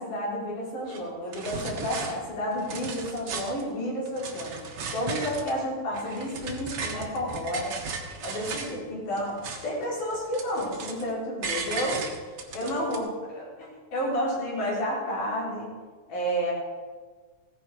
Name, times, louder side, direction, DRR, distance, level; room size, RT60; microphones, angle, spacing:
voice 1, 0.0-4.5 4.9-7.7 8.2-12.0 12.5-15.7 16.1-16.5, equal, 80° left, -5 dB, 5.5 m, -31 dB
sound 1, 0.9-1.0 1.3-2.1 2.5-3.6 4.1-5.6 5.9-8.8 9.1-9.8 10.1-11.1 11.4-13.0, right 4 dB, 55° right, 2.1 m, -36 dB
16.5 x 11.0 x 4.8 m, 1.4 s
omnidirectional pair, 3.5 m